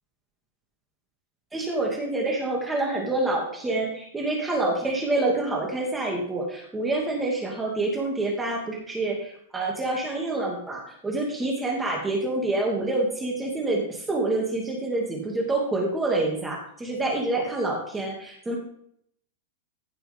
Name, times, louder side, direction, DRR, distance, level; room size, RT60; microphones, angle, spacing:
voice 1, 1.5-18.6, right 2 dB, 10° right, -1 dB, 2.4 m, -27 dB
15.5 x 6.9 x 3.7 m, 0.67 s
supercardioid pair, 150°, 0 cm